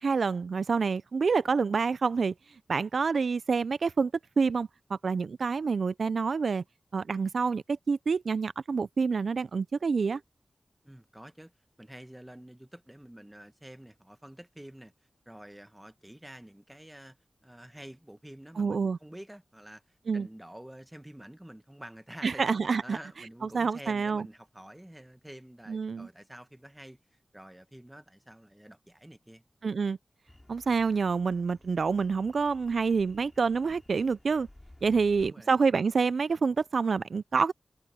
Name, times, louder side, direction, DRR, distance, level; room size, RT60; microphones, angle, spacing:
voice 1, 0.0-2.3 2.7-4.1 4.4-6.6 6.9-10.2 18.6-19.0 20.1-20.3 22.2-23.0 23.5-24.3 25.7-26.1 29.6-30.0 30.5-34.5 34.8-37.5, right 5 dB, 85° right, 0.3 m, -27 dB
voice 2, 10.8-11.5 11.8-14.9 15.2-17.2 17.4-19.8 20.1-22.4 22.8-27.0 27.3-29.4 35.1-35.5, right 1 dB, 10° right, 1.3 m, -48 dB
sound 1, 30.3-35.3, left 1 dB, 20° left, 2.9 m, -56 dB
wide cardioid pair, 75°, 0 cm